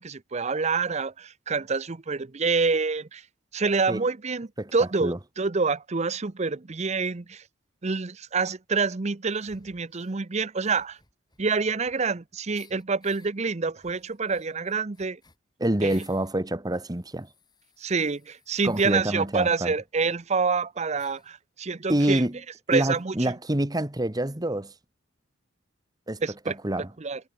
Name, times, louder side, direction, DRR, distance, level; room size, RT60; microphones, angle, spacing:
voice 1, 0.0-3.2 3.5-7.4 7.8-11.0 11.4-15.2 15.8-15.9 17.8-22.2 22.7-23.1 26.2-26.5 27.0-27.2, right 4 dB, 35° right, 0.7 m, -27 dB
sound 1, 9.3-10.2 10.6-12.2 12.5-13.3 13.8-16.3 16.7-19.0 19.9-20.0 20.2-20.3 21.0-21.3, left 4 dB, 20° left, 7.9 m, -58 dB
voice 2, 15.6-17.3 18.6-19.7 21.9-22.4 22.7-24.7 26.1-26.9, right 1 dB, 20° right, 1.5 m, -27 dB
head